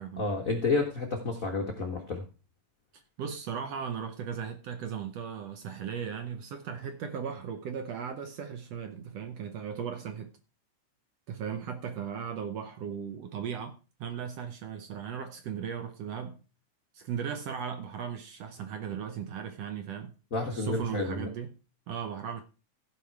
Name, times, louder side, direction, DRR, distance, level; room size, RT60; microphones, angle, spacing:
voice 1, 0.2-2.2 20.3-21.3, left 3 dB, 80° left, 0.7 m, -30 dB
voice 2, 2.9-10.3 11.3-16.4 16.9-20.1 20.5-21.6 21.9-22.4, right 7 dB, 70° right, 1.6 m, -37 dB
15.0 x 5.3 x 4.6 m
omnidirectional pair, 3.7 m